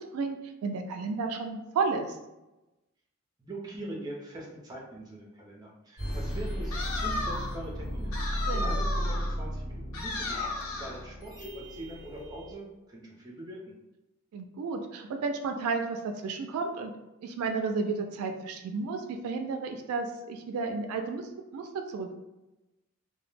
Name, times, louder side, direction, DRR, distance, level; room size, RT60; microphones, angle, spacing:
voice 1, 0.1-2.2 8.5-8.7 14.3-16.9 17.2-22.1, right 4 dB, 90° right, 5 dB, 0.3 m, -32 dB
voice 2, 3.4-13.7, right 1 dB, 20° right, -2 dB, 0.5 m, -42 dB
sound 1, 6.0-12.5, equal, 65° left, 1.3 m, -34 dB
sound 2, 6.7-7.6 8.1-9.4 9.9-11.0, left 3 dB, 85° left, 0.5 m, -34 dB
2.2 x 2.0 x 3.2 m, 1.0 s
head